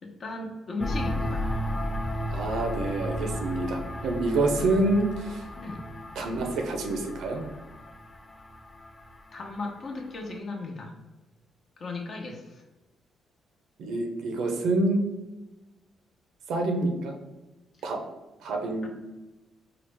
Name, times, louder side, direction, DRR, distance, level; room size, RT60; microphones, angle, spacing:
voice 1, 0.0-1.5 4.4-4.7 5.6-5.8 9.3-10.9 11.8-12.6 18.8-18.9, left 3 dB, 45° left, 1 dB, 0.8 m, -36 dB
sound 1, 0.8-10.3, equal, 20° left, 0.4 m, -34 dB
voice 2, 2.3-5.5 6.2-7.4 13.8-15.0 16.5-17.2 17.8-18.0 18.4-18.9, right 2 dB, 75° right, 3 dB, 0.6 m, -27 dB
4.7 x 2.0 x 3.3 m, 1.1 s
cardioid pair, 90°, 0 cm